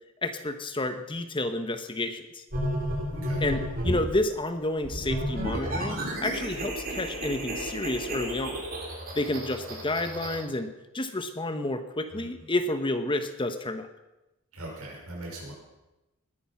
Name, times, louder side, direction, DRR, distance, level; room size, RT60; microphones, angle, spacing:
voice 1, 0.2-2.4 3.4-8.6 9.1-13.9, left 2 dB, 25° left, 8 dB, 1.0 m, -30 dB
sound 1, 2.5-4.1 4.8-10.4, equal, 40° right, 3.8 m, -32 dB
voice 2, 3.1-3.4 12.1-12.3 14.5-15.5, right 1 dB, 80° right, -1 dB, 5.7 m, -40 dB
20.0 x 10.0 x 6.0 m, 0.99 s
head